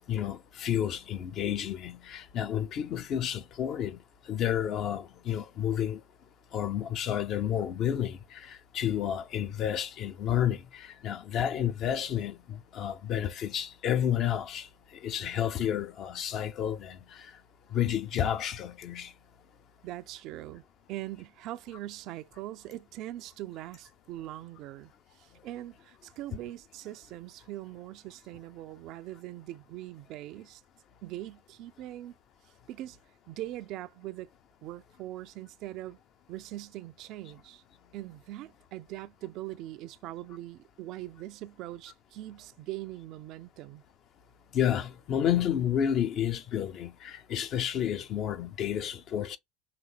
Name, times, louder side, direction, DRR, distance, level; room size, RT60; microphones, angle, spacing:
voice 1, 0.1-4.0 4.3-6.0 6.5-14.7 15.0-17.0 17.7-19.1 44.5-49.4, left 10 dB, 45° left, 0.6 m, -30 dB
voice 2, 19.8-20.6 20.9-30.6 31.0-32.2 32.7-33.0 33.3-34.3 34.6-36.0 36.3-37.6 37.9-43.8, right 15 dB, 50° right, 0.4 m, -41 dB
5.8 x 3.1 x 2.3 m
figure-of-eight pair, 70°, 0 cm